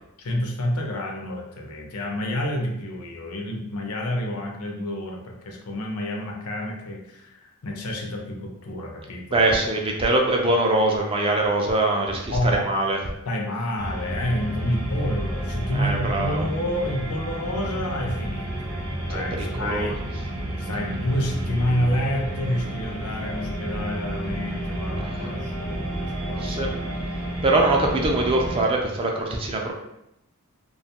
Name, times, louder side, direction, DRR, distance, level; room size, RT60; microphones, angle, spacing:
voice 1, 0.2-9.4 12.3-12.6 13.3-18.7 19.1-20.0 20.6-26.7, left 1 dB, 80° left, 1 dB, 0.5 m, -29 dB
voice 2, 9.3-13.0 15.7-16.4 19.1-19.9 26.4-26.7 27.4-29.7, right 2 dB, 25° right, 1 dB, 0.3 m, -23 dB
sound 1, 13.8-28.6, right 1 dB, 80° right, 0.7 m, -31 dB
2.5 x 2.3 x 2.8 m, 0.84 s
head